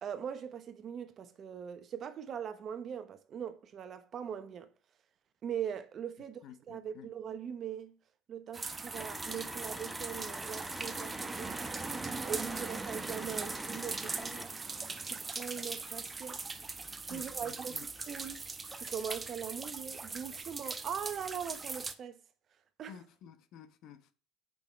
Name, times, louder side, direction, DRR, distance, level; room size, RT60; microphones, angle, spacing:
voice 1, 0.0-4.7 5.4-6.4 6.7-7.9 8.3-11.6 12.2-14.5 15.0-16.4 17.1-18.5 18.7-22.2 22.8-23.0, right 8 dB, 45° right, 0.9 m, -41 dB
voice 2, 6.4-7.1 17.1-17.9 22.9-24.1, left 8 dB, 60° left, 1.0 m, -52 dB
sound 1, 8.5-21.9, right 4 dB, 25° right, 0.8 m, -40 dB
sound 2, 8.9-14.5, left 2 dB, 10° left, 0.5 m, -46 dB
7.1 x 5.5 x 4.6 m
hypercardioid pair, 75°, 0 cm